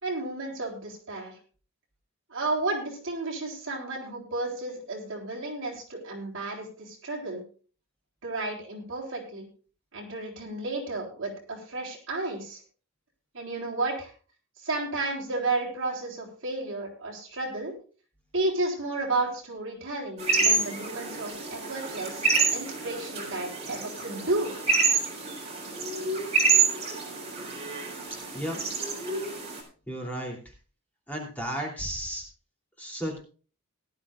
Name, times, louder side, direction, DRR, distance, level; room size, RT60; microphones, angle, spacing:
voice 1, 0.0-1.4 2.3-7.4 8.2-9.5 9.9-12.6 13.3-14.1 14.6-17.7 18.3-22.3 22.5-24.5, right 2 dB, 55° right, -1 dB, 3.8 m, -32 dB
sound 1, 20.2-29.6, right 4 dB, 30° right, 3.8 m, -28 dB
voice 2, 29.9-30.4 31.1-32.2 32.8-33.2, equal, 5° left, -2 dB, 2.9 m, -33 dB
18.0 x 11.5 x 2.4 m, 0.38 s
head